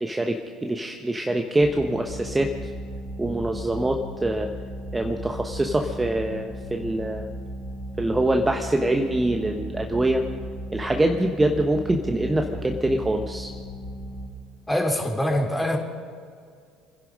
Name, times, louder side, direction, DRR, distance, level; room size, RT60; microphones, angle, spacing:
voice 1, 0.0-2.5 3.2-4.5 4.9-7.3 8.0-10.2 10.7-13.5, right 1 dB, 15° right, 4 dB, 1.1 m, -24 dB
sound 1, 1.6-14.3, equal, 60° left, 2.5 m, -36 dB
voice 2, 14.7-15.8, left 1 dB, 10° left, 1 dB, 3.5 m, -24 dB
25.0 x 11.0 x 5.3 m, 2.2 s
hypercardioid pair, 65°, 0 cm